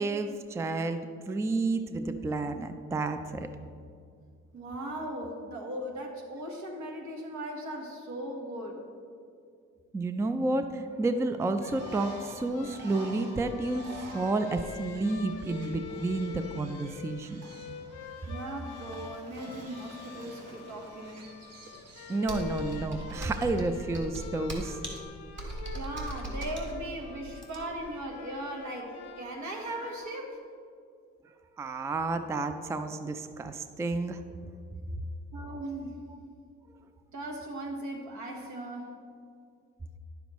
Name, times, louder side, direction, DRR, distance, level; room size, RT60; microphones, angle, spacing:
voice 1, 0.0-3.5 9.9-13.9 14.1-17.4 22.1-24.8 31.6-34.2 36.1-36.2, right 2 dB, 10° right, 9 dB, 0.3 m, -31 dB
voice 2, 4.5-8.8 18.3-21.2 25.5-30.4 35.3-35.9 37.1-38.9, right 1 dB, 70° right, 1 dB, 1.4 m, -38 dB
sound 1, 11.6-30.2, left 7 dB, 90° left, 0.8 m, -45 dB
Bird, 11.6-23.6, right 3 dB, 55° right, 1.1 m, -50 dB
Computer keyboard, 22.3-27.9, right 1 dB, 40° right, 1.7 m, -39 dB
10.0 x 6.9 x 3.0 m, 2.3 s
cardioid pair, 90°, 30 cm